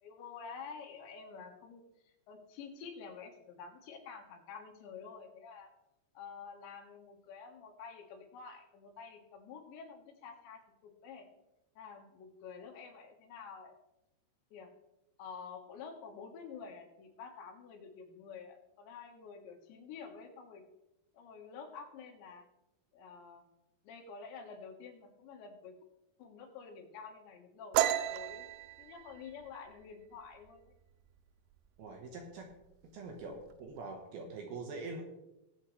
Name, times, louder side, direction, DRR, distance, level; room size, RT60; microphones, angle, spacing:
voice 1, 0.0-5.7 6.2-11.3 11.8-13.8 14.5-14.7 15.2-20.6 21.1-22.5 22.9-23.4 23.8-25.7 26.2-28.5 28.8-30.7, left 5 dB, 85° left, 2 dB, 3.8 m, -49 dB
sound 1, 27.7-31.2 31.5-31.8 32.2-32.7 33.0-33.8, right 12 dB, 85° right, 2.9 m, -34 dB
voice 2, 31.8-32.5 32.9-35.0, right 3 dB, 70° right, 2 dB, 2.9 m, -44 dB
20.0 x 7.3 x 3.3 m, 0.94 s
omnidirectional pair, 5.0 m